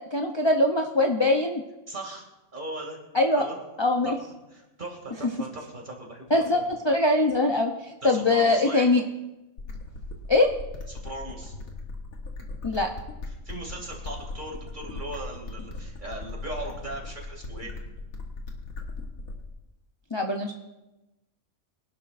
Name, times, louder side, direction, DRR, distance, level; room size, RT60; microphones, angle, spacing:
voice 1, 0.0-1.6 3.1-3.4 3.8-4.1 6.3-9.0 10.3-10.5 12.6-12.9 20.1-20.5, left 2 dB, 30° left, 3 dB, 0.6 m, -22 dB
voice 2, 1.9-2.2 2.5-3.0 3.3-3.6 4.0-4.2 4.5-6.6 8.0-8.9 10.9-11.5 13.3-17.7, right 2 dB, 35° right, 0 dB, 2.7 m, -38 dB
sound 1, 9.6-19.6, left 3 dB, 85° left, 1.9 m, -38 dB
24.0 x 11.5 x 2.6 m, 1.0 s
omnidirectional pair, 1.4 m